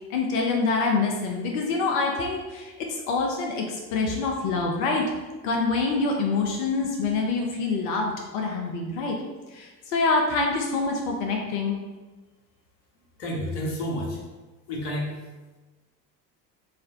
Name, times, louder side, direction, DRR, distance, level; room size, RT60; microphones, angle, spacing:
voice 1, 0.1-5.0 5.4-9.2 9.5-11.8, left 3 dB, 50° left, 1 dB, 0.6 m, -26 dB
voice 2, 13.2-14.2 14.7-15.1, equal, 70° left, -1 dB, 1.0 m, -30 dB
3.2 x 2.5 x 4.0 m, 1.2 s
figure-of-eight pair, 65°, 49 cm